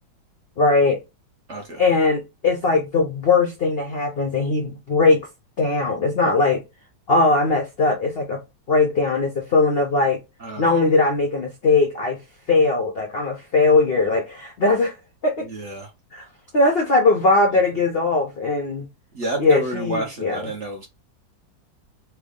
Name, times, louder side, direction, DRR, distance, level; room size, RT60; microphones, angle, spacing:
voice 1, 0.6-1.0 1.8-5.3 5.6-6.6 7.1-8.4 8.7-10.2 10.6-12.2 12.5-15.0 15.2-15.5 16.1-16.3 16.5-18.9 19.4-20.5, left 3 dB, 85° left, 0.5 m, -20 dB
voice 2, 1.5-1.8 10.4-10.8 15.4-15.9 19.1-20.9, right 1 dB, 55° right, 0.9 m, -30 dB
3.4 x 2.2 x 3.5 m
omnidirectional pair, 2.1 m